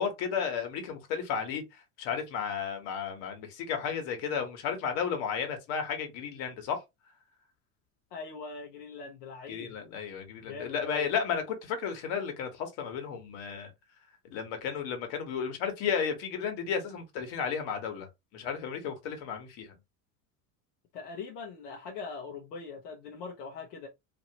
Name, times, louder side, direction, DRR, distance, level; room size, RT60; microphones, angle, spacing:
voice 1, 0.0-1.6 2.0-6.8 9.5-13.7 14.3-18.1 18.3-19.7, left 7 dB, 70° left, 1.3 m, -33 dB
voice 2, 8.1-9.7 10.4-11.1 20.9-23.9, left 4 dB, 85° left, 0.9 m, -41 dB
2.8 x 2.8 x 2.8 m
supercardioid pair, 90°, 47 cm